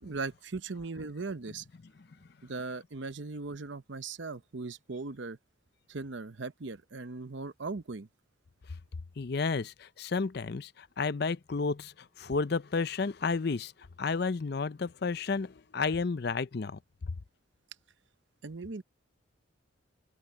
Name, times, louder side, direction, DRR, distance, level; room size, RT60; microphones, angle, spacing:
voice 1, 0.0-1.7 2.4-5.4 5.9-8.1 18.4-18.8, right 3 dB, 65° right, 0.8 m, -38 dB
voice 2, 9.2-13.7 14.0-16.8, left 4 dB, 50° left, 0.5 m, -32 dB
open air
head